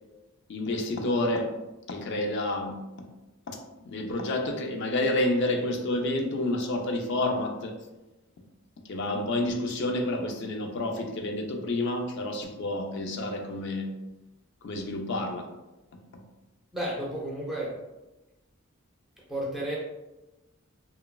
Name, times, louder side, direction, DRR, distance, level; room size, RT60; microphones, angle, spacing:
voice 1, 0.5-1.6 1.9-3.1 3.5-7.7 8.8-13.9 14.6-15.5 15.9-16.2, left 1 dB, 55° left, 0.4 m, -29 dB
voice 2, 16.7-17.8 19.3-19.8, right 1 dB, ahead, 0.4 m, -32 dB
2.9 x 2.3 x 2.2 m
head